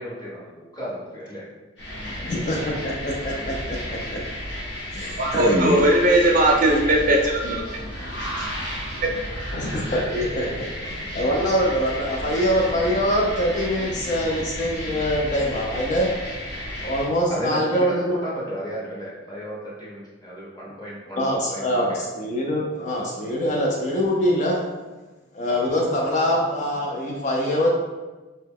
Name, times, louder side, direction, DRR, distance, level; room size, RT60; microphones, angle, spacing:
voice 1, 0.0-1.4 2.2-2.3 17.3-22.0, equal, 20° left, -7 dB, 0.8 m, -34 dB
sound 1, 1.8-17.0, equal, 55° left, 1.0 m, -33 dB
voice 2, 2.2-4.2 4.9-5.8 9.5-16.1 16.8-18.2 21.2-24.6 25.3-27.7, equal, 35° left, -1 dB, 0.3 m, -24 dB
voice 3, 5.2-7.8 8.2-8.5, right 1 dB, 40° right, 0 dB, 0.4 m, -19 dB
2.8 x 2.2 x 3.5 m, 1.2 s
head